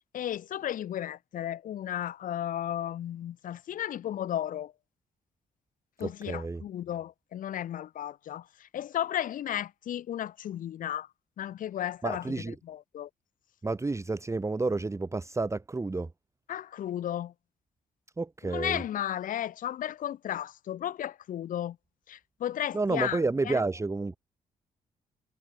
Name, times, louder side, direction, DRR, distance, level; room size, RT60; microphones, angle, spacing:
voice 1, 0.1-4.7 6.0-11.1 11.4-12.4 12.6-13.1 16.5-17.3 18.4-21.8 22.1-23.2 23.4-23.6, left 11 dB, 70° left, 1.1 m, -34 dB
voice 2, 6.0-6.6 12.0-12.5 13.6-16.1 18.2-18.8 22.7-24.2, right 3 dB, 20° right, 1.2 m, -30 dB
cardioid pair, 70°, 15 cm